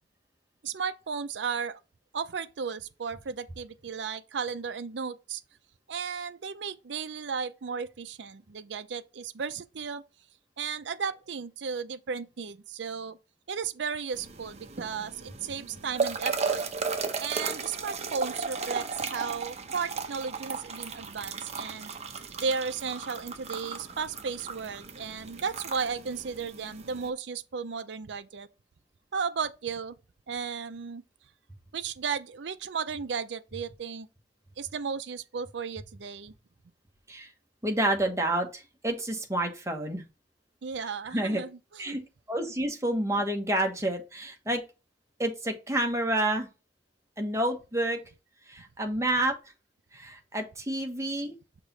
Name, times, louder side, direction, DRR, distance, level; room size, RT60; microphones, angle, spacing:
voice 1, 0.6-1.8 2.1-5.4 5.9-10.0 10.6-13.2 13.5-16.6 17.2-21.9 22.4-28.5 29.1-30.0 30.3-31.0 31.7-34.1 34.6-36.3 40.6-42.1, right 5 dB, 75° right, 0.5 m, -34 dB
sound 1, 14.1-27.1, right 5 dB, 40° right, 0.8 m, -35 dB
voice 2, 37.6-40.0 40.8-41.4 41.8-42.0 42.3-44.6 45.2-46.5 47.2-48.0 48.5-49.3 49.9-51.3, right 1 dB, 15° right, 1.2 m, -29 dB
6.4 x 3.0 x 5.3 m
head